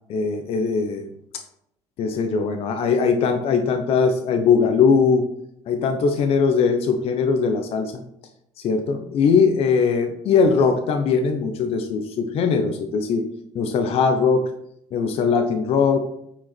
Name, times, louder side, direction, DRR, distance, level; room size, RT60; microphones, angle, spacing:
voice 1, 0.1-1.1 1.3-1.4 2.0-5.2 5.7-8.0 8.6-13.3 13.5-14.5 14.9-16.0, left 5 dB, 55° left, 6 dB, 0.9 m, -20 dB
9.0 x 5.0 x 4.4 m, 0.74 s
cardioid pair, 110°, 12 cm